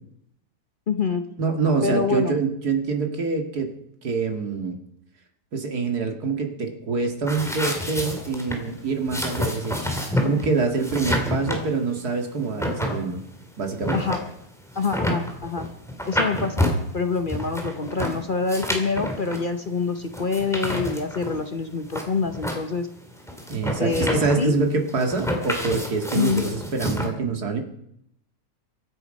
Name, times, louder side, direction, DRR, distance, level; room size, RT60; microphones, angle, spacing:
voice 1, 0.9-1.2 1.8-2.4 13.9-14.2 14.8-15.7 16.1-16.7 16.9-22.9 23.8-24.6 26.1-26.4, left 4 dB, 45° left, 7 dB, 0.7 m, -26 dB
voice 2, 1.4-3.7 4.0-4.8 5.5-9.8 10.2-13.2 13.6-14.0 23.5-27.6, right 4 dB, 60° right, 4 dB, 2.4 m, -25 dB
sound 1, 7.3-27.1, equal, ahead, 2.6 m, -29 dB
23.5 x 9.4 x 5.3 m, 0.74 s
omnidirectional pair, 1.9 m